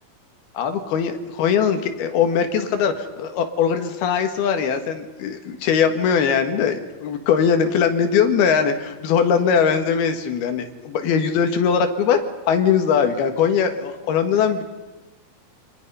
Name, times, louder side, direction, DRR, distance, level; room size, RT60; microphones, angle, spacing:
voice 1, 0.6-12.2 12.5-14.6, left 7 dB, 85° left, 7 dB, 3.7 m, -20 dB
27.5 x 25.5 x 5.5 m, 1.1 s
omnidirectional pair, 4.3 m